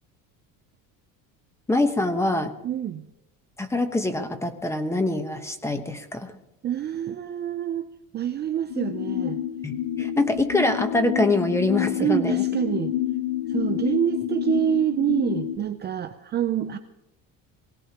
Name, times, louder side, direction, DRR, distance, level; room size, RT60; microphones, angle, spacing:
voice 1, 1.7-2.5 3.6-6.3 9.6-12.4, left 2 dB, 5° left, 8 dB, 1.0 m, -24 dB
voice 2, 2.6-3.0 6.6-7.9 8.1-9.4 12.0-12.9 13.5-16.8, right 10 dB, 30° right, 6 dB, 0.5 m, -26 dB
sound 1, 8.7-15.6, left 12 dB, 85° left, 1.0 m, -28 dB
23.0 x 17.0 x 2.9 m, 0.88 s
cardioid pair, 155°, 36 cm